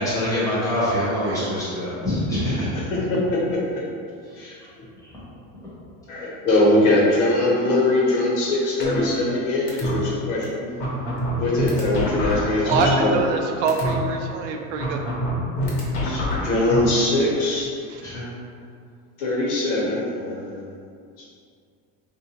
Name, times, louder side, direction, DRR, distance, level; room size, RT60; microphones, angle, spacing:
voice 1, 0.0-2.8 5.0-5.1 18.0-18.2, left 1 dB, 10° left, -10 dB, 0.7 m, -24 dB
voice 2, 2.9-3.6 4.4-4.5 6.1-10.7 11.4-13.2 16.0-17.7 19.2-20.5, left 1 dB, 60° left, -5 dB, 1.1 m, -22 dB
sound 1, 8.8-9.4 9.7-9.9 10.4-10.5 10.8-13.4 13.7-13.9 14.8-16.8, left 1 dB, 85° left, 1.1 m, -25 dB
voice 3, 12.6-15.0, right 4 dB, 60° right, 3 dB, 0.5 m, -24 dB
3.5 x 2.6 x 2.9 m, 2.3 s
supercardioid pair, 170°, 40 cm